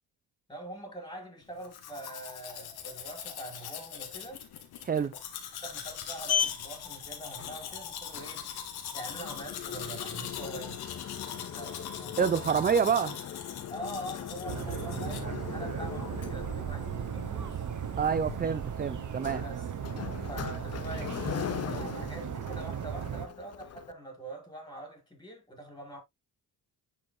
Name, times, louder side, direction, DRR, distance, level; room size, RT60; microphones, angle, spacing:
voice 1, 0.5-4.5 5.6-8.5 8.9-10.9 11.3-12.6 13.7-17.6 19.4-19.7 20.2-26.0, right 1 dB, 10° left, 5.1 m, -44 dB
Domestic sounds home sounds, 1.6-15.2, left 8 dB, 85° left, 2.0 m, -42 dB
Sliding door, 5.6-23.9, left 9 dB, 40° left, 0.7 m, -39 dB
voice 2, 12.2-13.2 18.0-19.4, right 6 dB, 25° right, 0.6 m, -27 dB
sound 1, 14.5-23.3, right 8 dB, 50° right, 1.2 m, -36 dB
10.5 x 5.6 x 2.3 m
cardioid pair, 90°, 38 cm